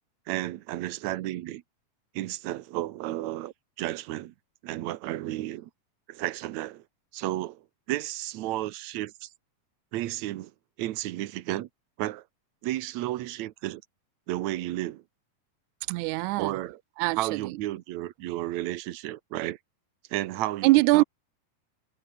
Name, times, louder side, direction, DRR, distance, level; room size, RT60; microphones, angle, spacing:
voice 1, 0.3-1.6 2.2-4.3 4.6-5.7 6.1-6.8 7.1-7.6 7.9-9.3 9.9-10.5 10.8-11.7 12.0-12.2 12.6-13.8 14.3-15.0 16.4-16.8 17.2-19.6 20.1-21.0, right 15 dB, 70° right, 1.9 m, -32 dB
voice 2, 15.9-16.6 17.0-17.6 20.6-21.0, right 21 dB, 85° right, 1.7 m, -23 dB
omnidirectional pair, 4.0 m